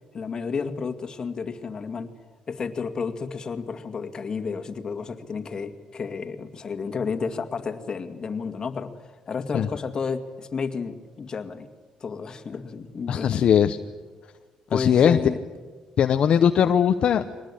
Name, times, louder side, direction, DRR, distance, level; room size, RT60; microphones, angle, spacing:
voice 1, 0.1-2.1 2.5-11.7 12.0-13.4 14.7-15.4, left 5 dB, 35° left, 7 dB, 2.2 m, -31 dB
voice 2, 13.1-13.8 14.7-15.2 16.0-17.3, left 8 dB, 55° left, 7 dB, 0.9 m, -19 dB
23.5 x 19.5 x 10.0 m, 1.4 s
cardioid pair, 110°, 2 cm